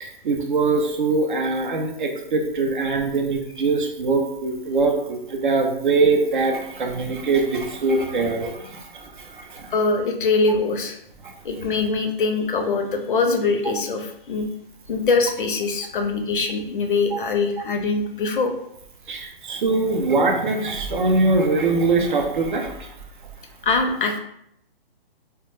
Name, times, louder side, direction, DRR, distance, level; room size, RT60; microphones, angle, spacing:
voice 1, 0.0-9.7 11.2-11.3 17.1-17.2 19.1-23.0, right 3 dB, 55° right, 3 dB, 0.5 m, -22 dB
voice 2, 9.7-11.0 11.4-14.4 14.9-18.5 23.6-24.2, left 4 dB, 60° left, 4 dB, 0.5 m, -23 dB
2.2 x 2.1 x 3.0 m, 0.75 s
hypercardioid pair, 165°, 30 cm